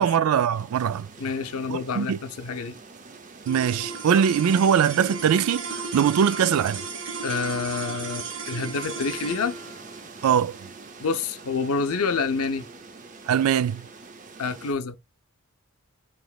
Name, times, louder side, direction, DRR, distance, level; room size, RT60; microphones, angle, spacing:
voice 1, 0.0-1.1 1.7-2.2 3.5-5.7 5.9-6.8 10.2-10.6 13.3-13.8, right 8 dB, 80° right, 0.3 m, -21 dB
sound 1, 0.5-14.7, right 4 dB, 35° right, 0.6 m, -46 dB
voice 2, 1.2-2.8 7.2-9.6 11.0-12.7 14.4-15.0, left 4 dB, 90° left, 0.6 m, -28 dB
sound 2, 3.4-13.9, right 4 dB, 55° right, 1.1 m, -36 dB
4.9 x 3.1 x 2.3 m
head